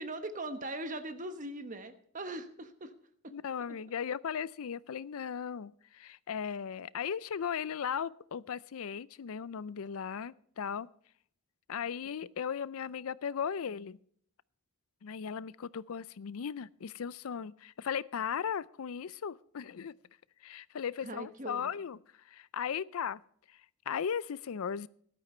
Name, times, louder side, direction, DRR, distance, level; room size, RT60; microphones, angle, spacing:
voice 1, 0.0-2.9 3.2-3.3 3.7-3.8 21.0-21.7, right 2 dB, 35° right, 1.1 m, -40 dB
voice 2, 3.3-10.9 11.7-14.0 15.0-19.9 20.4-23.2 23.5-24.9, left 7 dB, 70° left, 0.4 m, -37 dB
13.5 x 12.0 x 4.3 m
head